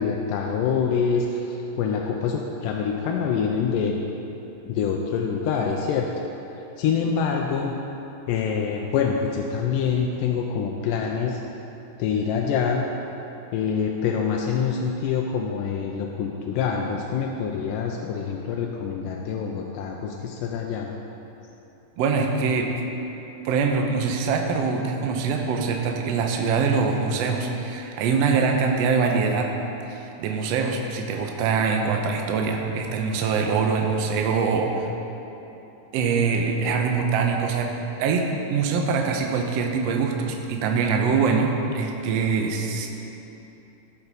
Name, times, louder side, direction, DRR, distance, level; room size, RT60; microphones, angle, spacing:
voice 1, 0.0-4.0 4.7-6.1 6.8-7.8 8.3-11.4 12.0-12.9 13.5-20.9, left 6 dB, 90° left, 0 dB, 2.2 m, -25 dB
voice 2, 22.0-22.7 23.4-29.5 29.9-34.9 35.9-37.7 38.0-42.9, right 5 dB, 75° right, 2 dB, 1.5 m, -23 dB
15.5 x 5.7 x 4.1 m, 3.0 s
omnidirectional pair, 3.8 m